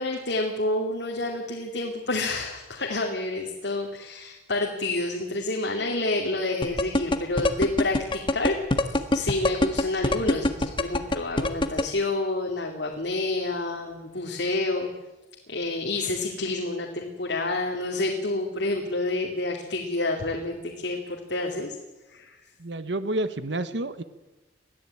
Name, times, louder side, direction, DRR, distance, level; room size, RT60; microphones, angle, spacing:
voice 1, 0.0-8.6 9.1-14.9 15.5-21.8 22.1-22.4, left 2 dB, 70° left, 0 dB, 2.6 m, -28 dB
sound 1, 6.6-11.8, left 1 dB, 30° left, 1.6 m, -22 dB
voice 2, 22.6-24.0, right 1 dB, 80° right, 12 dB, 1.2 m, -29 dB
22.0 x 14.5 x 8.9 m, 1.1 s
head